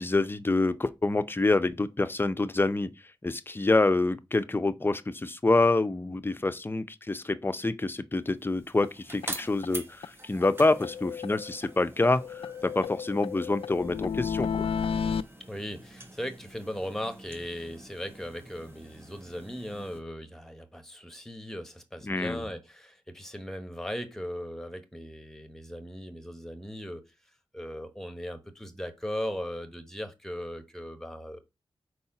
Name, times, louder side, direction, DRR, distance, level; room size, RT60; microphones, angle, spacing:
voice 1, 0.0-2.9 3.2-14.7 22.0-22.5, left 2 dB, 25° left, 0.5 m, -27 dB
sound 1, 8.3-20.0, right 1 dB, 25° right, 1.4 m, -46 dB
sound 2, 8.8-8.9 9.2-9.3 9.6-9.7 10.0-10.1 10.4-11.7 12.0-15.2, left 6 dB, 90° left, 0.4 m, -33 dB
voice 2, 15.4-27.0 27.5-31.4, equal, 5° left, 1.1 m, -38 dB
4.7 x 4.2 x 5.8 m
wide cardioid pair, 95°, 9 cm